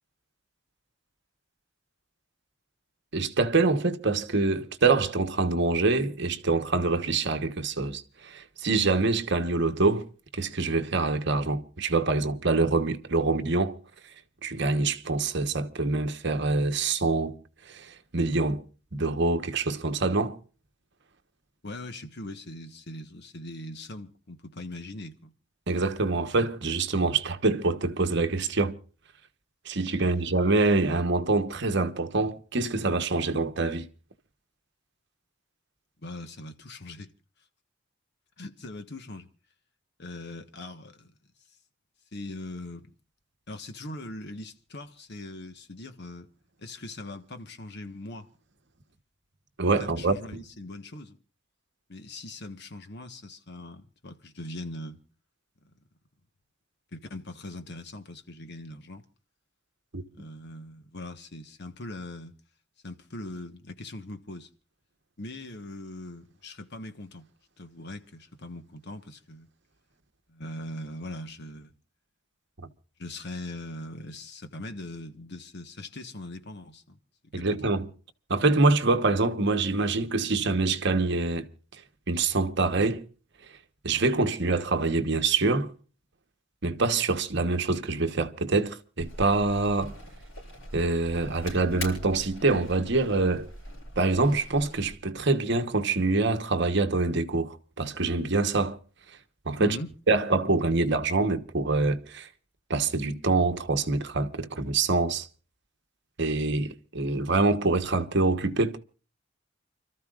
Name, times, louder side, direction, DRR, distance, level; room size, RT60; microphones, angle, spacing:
voice 1, 3.1-10.1 10.3-13.8 14.4-17.4 17.7-18.6 18.9-20.4 25.7-28.8 29.6-33.9 49.6-50.1 59.9-60.0 77.3-77.9 78.3-81.5 82.1-83.0 83.8-85.7 86.6-89.9 90.7-93.5 94.0-98.8 99.5-99.8 100.1-102.3 102.7-105.3 106.2-108.8, right 3 dB, 60° right, 1.2 m, -25 dB
voice 2, 21.6-25.3 36.0-37.1 38.4-39.3 40.0-41.1 42.1-42.9 43.5-46.3 46.6-48.3 49.8-51.2 51.9-55.0 56.9-59.1 60.1-62.4 62.8-64.5 65.2-67.3 67.6-69.5 70.3-71.7 73.0-77.0 77.3-77.7 99.6-99.9, left 1 dB, 55° left, 1.3 m, -41 dB
sound 1, 89.0-94.9, left 1 dB, 75° left, 7.5 m, -42 dB
29.5 x 13.5 x 2.4 m
head